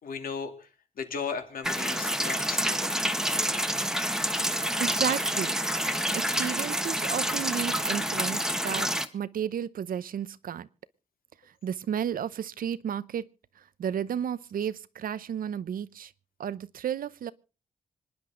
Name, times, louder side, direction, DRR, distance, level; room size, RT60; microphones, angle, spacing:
voice 1, 0.0-0.7 1.0-3.0, left 5 dB, 85° left, 2.9 m, -36 dB
sound 1, 1.6-9.1, equal, 5° right, 1.2 m, -28 dB
voice 2, 4.8-5.6 6.1-8.9 9.1-10.7 11.6-13.2 13.8-16.1 16.4-17.3, right 9 dB, 85° right, 0.8 m, -32 dB
26.0 x 10.5 x 3.8 m
wide cardioid pair, 115°, 14 cm